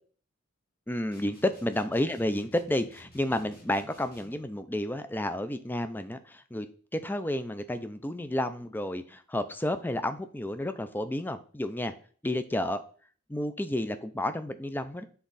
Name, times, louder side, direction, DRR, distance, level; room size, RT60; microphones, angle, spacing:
voice 1, 0.9-6.7 6.9-11.9 12.2-12.8 13.3-15.0, left 1 dB, 10° left, 10 dB, 0.5 m, -31 dB
sound 1, 1.1-4.5, left 1 dB, 50° left, 1.7 m, -54 dB
8.1 x 3.7 x 4.0 m, 0.43 s
head